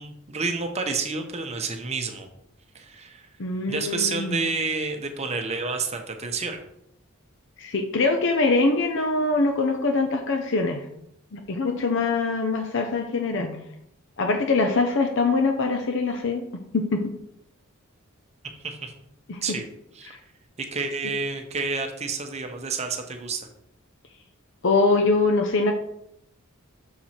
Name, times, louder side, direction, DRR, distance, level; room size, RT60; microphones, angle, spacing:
voice 1, 0.0-2.3 2.7-3.3 3.7-6.6 18.6-18.9 19.4-19.6 19.9-20.2 20.6-23.5, right 4 dB, 30° right, 5 dB, 0.8 m, -29 dB
voice 2, 3.4-4.4 7.6-10.8 11.3-13.6 14.2-16.5 16.7-17.1 19.3-19.4 20.1-20.2 24.6-25.7, left 3 dB, 60° left, 4 dB, 0.6 m, -23 dB
6.7 x 4.5 x 4.3 m, 0.75 s
head